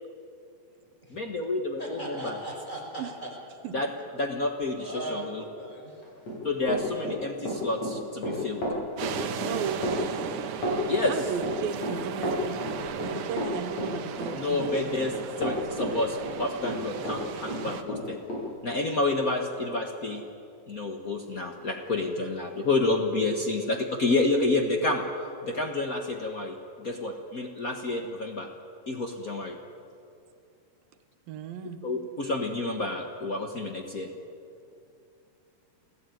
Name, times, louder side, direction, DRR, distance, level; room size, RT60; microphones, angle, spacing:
voice 1, 1.1-2.4 3.7-3.9 4.2-5.4 6.4-8.6 10.9-11.2 14.3-18.2 18.6-20.2 20.7-25.0 25.4-28.5 28.9-29.6 31.8-34.1, left 2 dB, 85° left, 3 dB, 0.7 m, -29 dB
voice 2, 1.8-3.3 4.8-6.0, right 1 dB, 10° left, 0 dB, 5.3 m, -38 dB
Run, 6.0-17.2 17.5-18.4, equal, 50° left, 9.3 m, -32 dB
sound 1, 9.0-17.8, right 8 dB, 75° right, 2.7 m, -37 dB
voice 3, 9.4-9.8 11.1-15.0 31.3-31.8, right 7 dB, 90° right, 7 dB, 3.1 m, -35 dB
28.5 x 16.5 x 9.3 m, 2.6 s
omnidirectional pair, 4.0 m